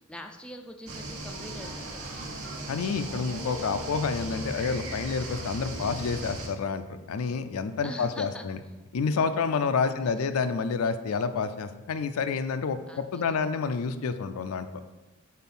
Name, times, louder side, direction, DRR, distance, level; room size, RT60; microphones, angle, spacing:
voice 1, 0.0-2.0 7.8-8.4 9.8-10.3 12.9-13.2, left 1 dB, 5° left, 4 dB, 0.3 m, -43 dB
sound 1, 0.9-6.5, right 1 dB, 75° right, 1.1 m, -37 dB
voice 2, 2.7-8.6 8.9-14.7, left 5 dB, 75° left, 10 dB, 0.4 m, -29 dB
4.3 x 4.0 x 5.4 m, 1.1 s
head